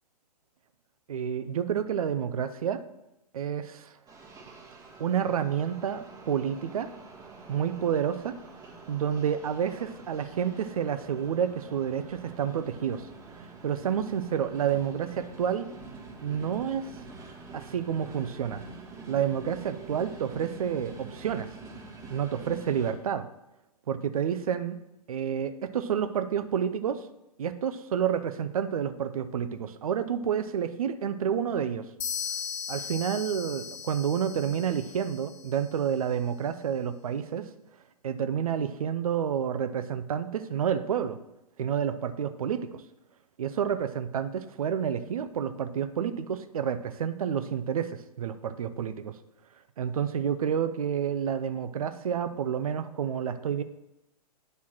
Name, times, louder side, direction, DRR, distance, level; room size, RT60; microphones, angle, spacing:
voice 1, 1.1-2.8 3.3-4.0 5.0-6.9 7.5-8.4 8.9-13.1 13.3-15.7 16.2-16.9 17.5-18.6 19.1-21.5 22.1-23.3 23.9-24.8 25.1-27.0 27.4-31.9 32.7-37.5 38.0-41.2 41.6-42.8 43.4-49.1 49.8-53.6, right 8 dB, 60° right, 11 dB, 0.7 m, -29 dB
sound 1, 4.1-22.9, right 3 dB, 15° right, 1.4 m, -46 dB
sound 2, 32.0-35.8, left 7 dB, 45° left, 0.8 m, -38 dB
8.6 x 4.1 x 6.1 m, 0.91 s
figure-of-eight pair, 115°, 20 cm